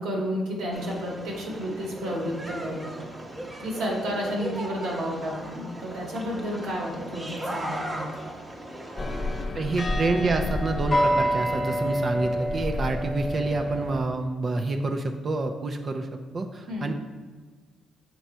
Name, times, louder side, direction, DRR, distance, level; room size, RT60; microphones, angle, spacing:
voice 1, 0.0-2.9 3.6-8.1 16.7-16.9, equal, 85° right, -2 dB, 1.8 m, -31 dB
sound 1, 0.7-9.4, right 1 dB, 20° right, 1.1 m, -37 dB
sound 2, 9.0-14.0, equal, 30° left, 0.6 m, -27 dB
voice 2, 9.5-16.1 16.3-16.9, right 3 dB, 40° right, 5 dB, 0.6 m, -28 dB
6.1 x 4.0 x 4.5 m, 1.4 s
cardioid pair, 90°, 0 cm